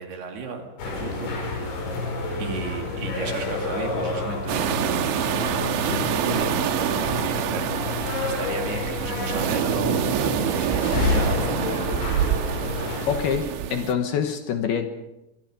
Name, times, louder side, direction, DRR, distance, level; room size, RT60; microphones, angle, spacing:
voice 1, 0.0-1.6 2.4-5.1 5.9-7.9 8.2-11.8, right 5 dB, 60° right, 3 dB, 4.2 m, -34 dB
sound 1, 0.8-13.2, left 3 dB, 85° left, 7.8 m, -29 dB
sound 2, 4.5-13.9, right 9 dB, 80° right, 3.6 m, -26 dB
voice 2, 5.8-6.1 13.1-14.9, left 7 dB, 70° left, 6 dB, 2.9 m, -26 dB
24.0 x 23.5 x 5.2 m, 0.93 s
omnidirectional pair, 5.3 m